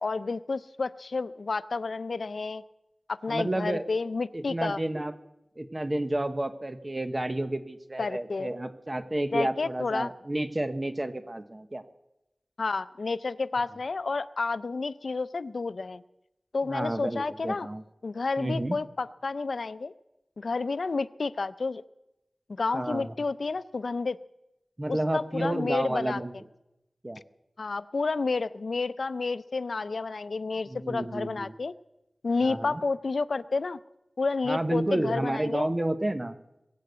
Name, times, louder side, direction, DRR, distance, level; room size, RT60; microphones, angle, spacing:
voice 1, 0.0-2.6 3.1-4.8 8.0-8.5 9.3-10.1 12.6-16.0 16.5-17.7 18.0-19.9 20.4-21.8 22.6-24.2 24.9-26.2 27.6-31.7 32.2-33.8 34.2-35.7, left 3 dB, 90° left, 14 dB, 0.5 m, -30 dB
voice 2, 3.3-3.8 4.3-5.1 5.6-11.8 16.7-17.8 18.4-18.8 22.7-23.1 24.8-26.3 27.0-27.2 30.7-31.5 32.4-32.8 34.5-36.3, right 1 dB, 30° right, 9 dB, 1.0 m, -30 dB
21.0 x 8.5 x 8.0 m, 0.92 s
wide cardioid pair, 75°, 0 cm